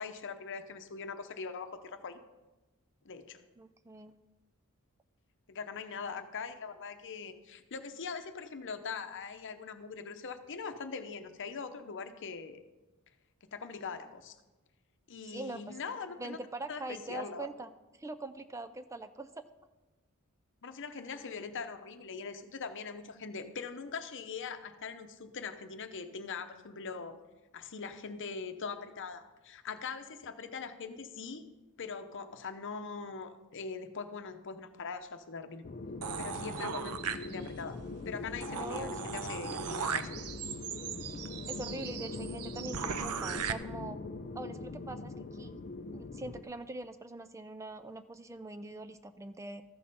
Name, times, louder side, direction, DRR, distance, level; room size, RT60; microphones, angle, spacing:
voice 1, 0.0-2.2 3.0-3.4 5.5-12.6 13.5-14.4 15.1-16.4 16.7-17.5 20.6-27.2 27.5-31.5 31.8-35.7 36.2-37.8 38.1-40.2, left 5 dB, 60° left, 8 dB, 0.8 m, -42 dB
voice 2, 3.6-4.2 15.2-15.8 16.2-19.4 38.5-39.4 41.5-44.0 44.3-45.6 45.9-49.6, right 2 dB, 15° right, 11 dB, 0.4 m, -43 dB
sound 1, 35.6-46.4, left 3 dB, 40° left, 0.5 m, -42 dB
sound 2, 36.0-37.7 38.1-38.2 38.4-43.5, right 7 dB, 80° right, 0.6 m, -38 dB
14.0 x 6.5 x 5.4 m, 1.1 s
head